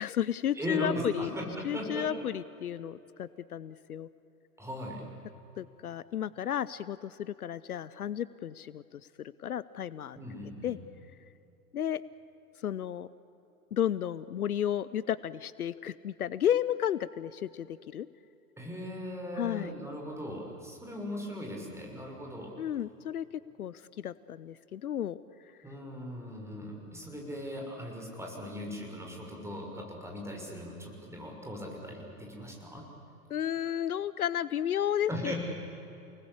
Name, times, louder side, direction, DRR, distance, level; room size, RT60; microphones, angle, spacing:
voice 1, 0.0-1.3 1.6-4.1 5.6-10.2 10.6-10.8 11.7-12.0 12.6-13.1 13.7-18.1 19.3-19.7 22.6-25.2 33.3-35.3, left 10 dB, 75° left, 18 dB, 0.8 m, -33 dB
voice 2, 0.5-2.1 4.6-5.1 10.2-10.7 18.6-22.5 25.6-32.8 35.1-35.4, equal, 5° right, 0 dB, 6.1 m, -38 dB
29.0 x 19.5 x 8.4 m, 3.0 s
figure-of-eight pair, 95°, 45 cm